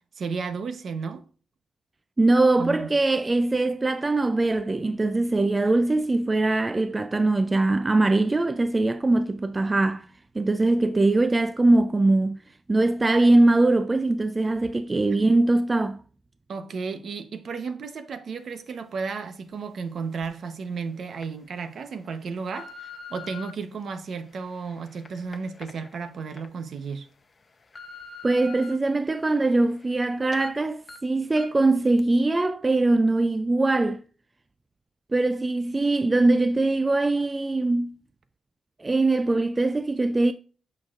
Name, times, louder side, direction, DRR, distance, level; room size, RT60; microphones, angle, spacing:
voice 1, 0.2-1.2 2.6-2.9 15.1-15.2 16.5-27.1, right 5 dB, 55° right, 0.9 m, -33 dB
voice 2, 2.2-10.1 10.4-12.4 12.7-16.0 28.2-34.0 35.1-38.0 38.8-40.3, right 2 dB, 20° right, 0.3 m, -22 dB
sound 1, 20.2-20.3 20.9-21.3 21.9-23.5 24.2-26.5 26.9-27.0 27.4-28.7 29.2-30.1 30.3-30.5 30.9-31.0 31.4-31.6 32.0-32.1, left 4 dB, 30° left, 0.8 m, -44 dB
8.7 x 6.4 x 2.5 m
wide cardioid pair, 145°, 0 cm